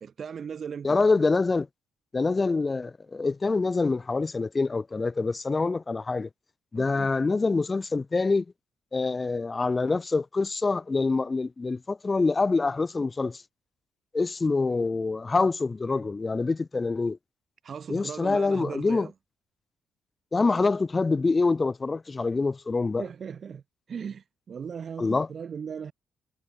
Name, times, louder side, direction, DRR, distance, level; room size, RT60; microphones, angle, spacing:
voice 1, 0.0-1.0 6.7-7.1 17.6-19.1 23.0-23.6 23.9-25.9, right 7 dB, 50° right, 1.2 m, -38 dB
voice 2, 0.8-1.7 2.1-6.3 6.7-8.4 8.9-13.4 14.1-17.2 17.9-19.1 20.3-23.0 25.0-25.3, left 3 dB, 25° left, 0.8 m, -25 dB
cardioid pair, 90°, 0 cm